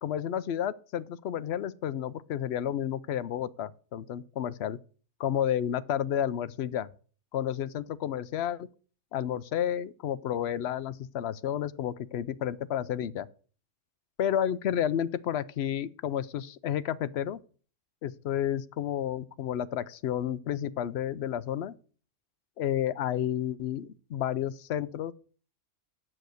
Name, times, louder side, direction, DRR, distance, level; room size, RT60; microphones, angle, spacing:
voice 1, 0.0-4.8 5.2-6.9 7.3-8.7 9.1-13.3 14.2-17.4 18.0-21.7 22.6-25.1, left 10 dB, 65° left, 0.8 m, -31 dB
7.7 x 6.6 x 7.7 m
omnidirectional pair, 1.3 m